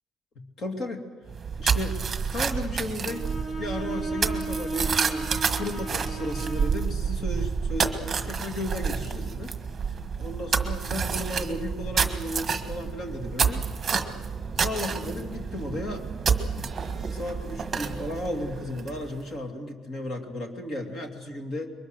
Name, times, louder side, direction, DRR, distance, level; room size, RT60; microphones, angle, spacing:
voice 1, 0.3-1.1 1.6-2.0 2.3-3.3 3.6-9.6 10.2-13.6 14.6-16.0 16.5-16.7 17.1-21.7, left 1 dB, 40° left, 4 dB, 2.8 m, -34 dB
sound 1, 1.3-19.2, right 6 dB, 25° right, 1.6 m, -29 dB
Bowed string instrument, 3.1-6.8, right 2 dB, 5° left, 1.6 m, -34 dB
27.5 x 23.0 x 6.5 m, 1.5 s
cardioid pair, 160°, 0 cm